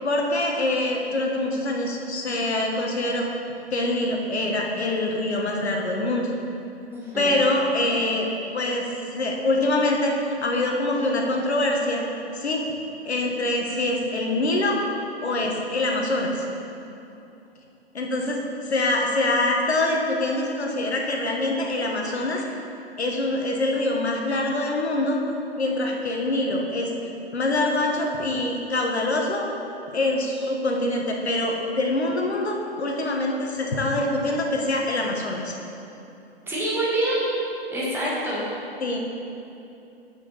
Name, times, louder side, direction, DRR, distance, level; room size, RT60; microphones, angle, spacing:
voice 1, 0.0-3.3 3.7-6.3 7.1-8.3 8.5-8.9 9.1-10.1 10.4-12.0 12.3-12.6 13.0-14.8 15.2-16.4 17.9-18.4 18.6-22.4 23.0-25.2 25.6-26.9 27.3-29.4 29.9-35.5 38.8-39.0, left 2 dB, 80° left, 0 dB, 1.5 m, -24 dB
voice 2, 6.9-7.4 36.5-37.2 37.7-38.4, right 1 dB, 5° right, -7 dB, 1.7 m, -26 dB
8.8 x 5.9 x 4.1 m, 2.8 s
hypercardioid pair, 130°, 32 cm